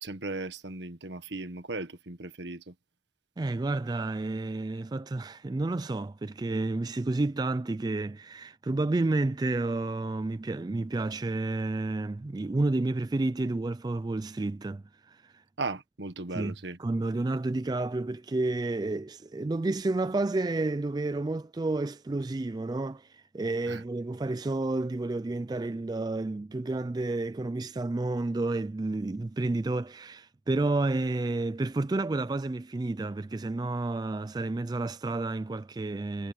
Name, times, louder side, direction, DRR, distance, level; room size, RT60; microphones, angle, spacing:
voice 1, 0.0-2.7 15.6-16.8 23.7-23.8, right 3 dB, 75° right, 1.5 m, -37 dB
voice 2, 3.4-15.4 16.3-36.3, right 2 dB, 20° right, 0.3 m, -30 dB
head